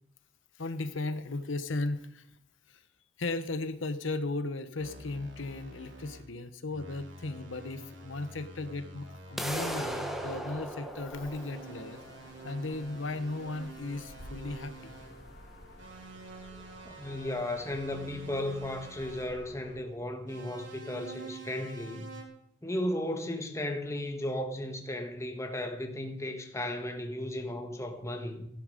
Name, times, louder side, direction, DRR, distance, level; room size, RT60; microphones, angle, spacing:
voice 1, 0.6-2.3 2.7-2.8 3.2-12.0 12.4-14.7, left 2 dB, 85° left, 1.0 m, -36 dB
sound 1, 4.8-6.3 6.7-10.5 11.2-15.2 15.8-19.4 20.3-22.2, right 3 dB, 75° right, 3.5 m, -48 dB
sound 2, 9.4-19.8, left 1 dB, 60° left, 3.2 m, -53 dB
sound 3, 9.4-15.3, right 1 dB, ahead, 1.3 m, -39 dB
voice 2, 16.8-22.1 22.6-28.5, left 1 dB, 15° left, 1.7 m, -35 dB
16.0 x 11.0 x 5.2 m
head